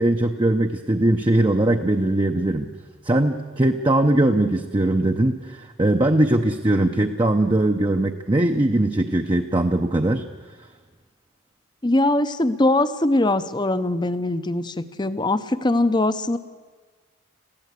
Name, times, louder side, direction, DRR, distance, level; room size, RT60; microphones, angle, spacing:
voice 1, 0.0-2.7 3.0-10.2, right 1 dB, 25° right, 3 dB, 0.7 m, -20 dB
voice 2, 11.8-16.4, left 2 dB, 20° left, 13 dB, 0.7 m, -21 dB
21.5 x 15.5 x 8.3 m, 1.4 s
head